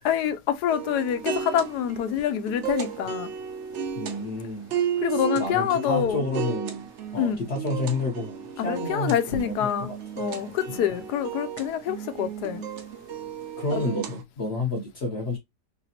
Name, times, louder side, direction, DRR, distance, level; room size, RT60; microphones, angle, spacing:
voice 1, 0.0-3.3 5.0-6.2 7.2-7.4 8.6-9.9 10.2-12.6 13.7-14.0, left 9 dB, 75° left, 1.1 m, -26 dB
sound 1, 0.7-14.2, right 8 dB, 65° right, 0.7 m, -34 dB
voice 2, 4.0-4.7 5.1-10.0 10.7-10.9 13.6-15.4, left 2 dB, 50° left, 0.8 m, -30 dB
3.3 x 2.9 x 2.8 m
omnidirectional pair, 1.8 m